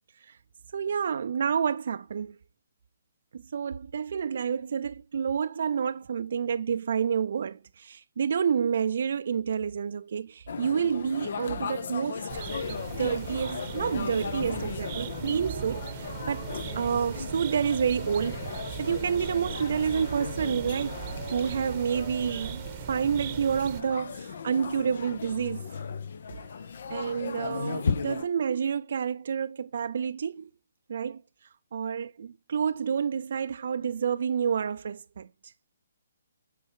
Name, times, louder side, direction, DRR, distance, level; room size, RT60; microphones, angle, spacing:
voice 1, 0.7-2.4 3.3-16.5 16.7-21.0 21.3-25.6 26.9-30.5 30.9-31.2 31.7-35.5, right 7 dB, 60° right, 0.4 m, -29 dB
sound 1, 10.5-28.3, left 6 dB, 60° left, 0.6 m, -36 dB
sound 2, 12.3-23.8, right 10 dB, 35° right, 0.8 m, -39 dB
8.0 x 4.6 x 4.6 m
hypercardioid pair, 150°, 0 cm